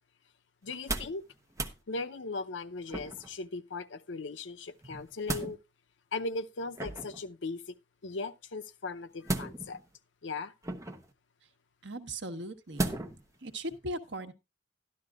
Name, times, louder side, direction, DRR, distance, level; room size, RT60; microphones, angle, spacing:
voice 1, 0.6-1.3 1.9-5.6 6.1-7.8 8.0-9.8 10.2-10.5, left 3 dB, 75° left, 0.7 m, -38 dB
sound 1, 0.7-1.2 1.5-1.8 2.9-3.4 4.8-5.5 6.8-7.2 9.2-9.9 10.6-11.1 12.8-13.3 13.7-13.8, right 2 dB, 15° right, 0.8 m, -35 dB
voice 2, 11.8-13.0 13.4-14.3, right 1 dB, 70° right, 1.2 m, -38 dB
12.5 x 11.5 x 2.4 m
head